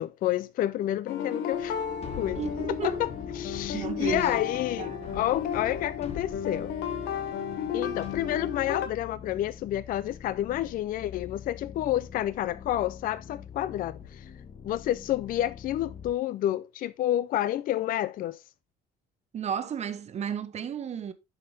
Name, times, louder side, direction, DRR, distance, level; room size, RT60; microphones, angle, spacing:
voice 1, 0.0-1.8 2.2-2.4 2.8-3.1 3.4-6.7 7.7-14.3 14.6-18.4, left 13 dB, 55° left, 0.4 m, -29 dB
sound 1, 1.1-8.9, left 7 dB, 80° left, 1.3 m, -33 dB
sound 2, 1.5-16.1, left 7 dB, 35° left, 1.1 m, -43 dB
voice 2, 2.4-3.0 3.7-4.4 4.8-5.2 19.3-21.1, right 8 dB, 40° right, 0.8 m, -33 dB
7.5 x 5.8 x 3.2 m
cardioid pair, 110°, 17 cm